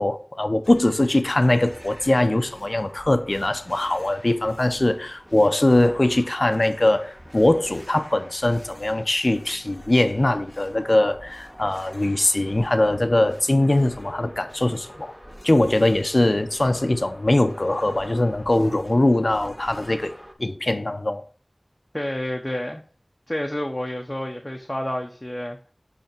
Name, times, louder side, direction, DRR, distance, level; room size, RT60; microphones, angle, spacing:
voice 1, 0.0-15.1 15.4-20.1 20.4-21.2, left 1 dB, 55° left, 0.7 m, -21 dB
sound 1, 0.6-20.3, equal, 5° right, 1.2 m, -45 dB
voice 2, 21.9-22.8 23.3-25.7, left 1 dB, 25° left, 0.9 m, -29 dB
10.5 x 3.5 x 4.4 m
wide cardioid pair, 45°, 0 cm